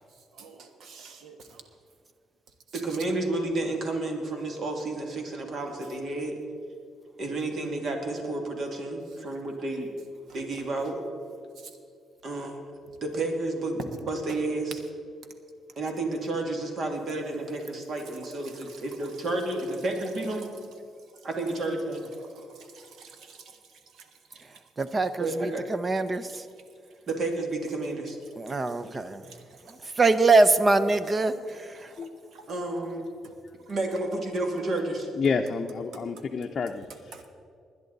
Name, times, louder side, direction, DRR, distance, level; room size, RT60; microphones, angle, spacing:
voice 1, 0.4-1.6 22.7-23.4 32.3-32.4 37.1-37.2, right 5 dB, 70° right, 6 dB, 1.4 m, -48 dB
voice 2, 2.7-6.4 7.2-9.9 10.3-11.0 12.2-14.8 15.8-20.5 21.2-22.0 25.2-25.6 27.1-28.2 28.8-29.0 32.5-33.0 33.7-35.1, right 2 dB, 50° right, 2 dB, 2.4 m, -31 dB
voice 3, 24.8-26.4 28.3-29.2 30.0-31.9, right 3 dB, 30° right, 13 dB, 0.7 m, -23 dB
voice 4, 35.2-36.9, left 5 dB, 45° left, 2 dB, 0.6 m, -28 dB
20.0 x 10.0 x 4.1 m, 2.4 s
cardioid pair, 90°, 0 cm